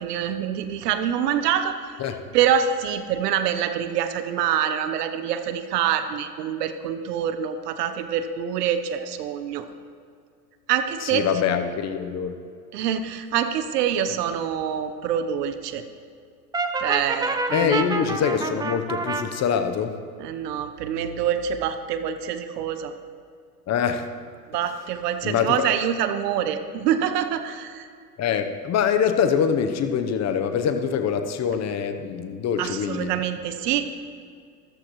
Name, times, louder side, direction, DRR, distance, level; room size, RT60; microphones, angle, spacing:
voice 1, 0.0-1.8 2.3-9.6 10.7-11.3 12.7-15.8 16.8-18.1 20.2-22.9 24.5-27.9 32.6-34.0, right 9 dB, 75° right, 10 dB, 1.1 m, -25 dB
voice 2, 11.0-12.4 17.5-20.0 23.7-24.1 25.2-25.7 28.2-33.1, left 7 dB, 35° left, 8 dB, 1.0 m, -24 dB
Brass instrument, 16.5-19.3, right 3 dB, 10° right, 0.7 m, -27 dB
14.5 x 13.5 x 3.2 m, 2.3 s
hypercardioid pair, 105°, 48 cm